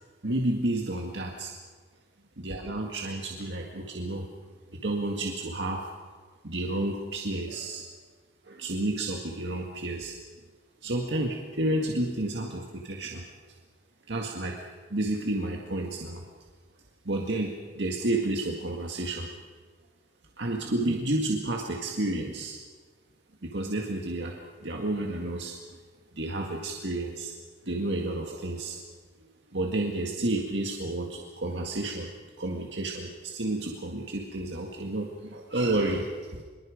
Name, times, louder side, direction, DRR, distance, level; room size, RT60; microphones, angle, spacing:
voice 1, 0.2-1.5 2.4-4.3 4.7-5.9 6.4-7.8 8.4-10.1 10.8-13.2 14.1-14.6 14.9-16.2 17.1-19.3 20.4-22.6 23.4-25.6 26.1-27.3 27.6-28.8 29.5-32.1 32.4-36.4, right 1 dB, 80° right, 1 dB, 1.9 m, -31 dB
24.5 x 22.5 x 5.1 m, 1.5 s
head